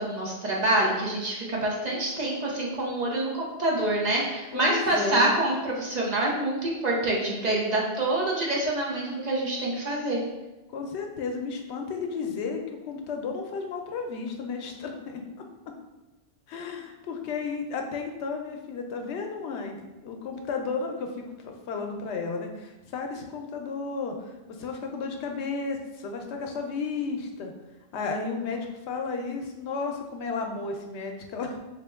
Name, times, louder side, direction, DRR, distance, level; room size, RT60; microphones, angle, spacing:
voice 1, 0.0-10.2, right 1 dB, 45° right, -3 dB, 0.7 m, -26 dB
voice 2, 4.5-5.3 10.7-15.2 16.5-27.5 27.9-31.6, left 4 dB, 85° left, 3 dB, 0.9 m, -33 dB
4.1 x 2.1 x 3.4 m, 1.0 s
omnidirectional pair, 1.1 m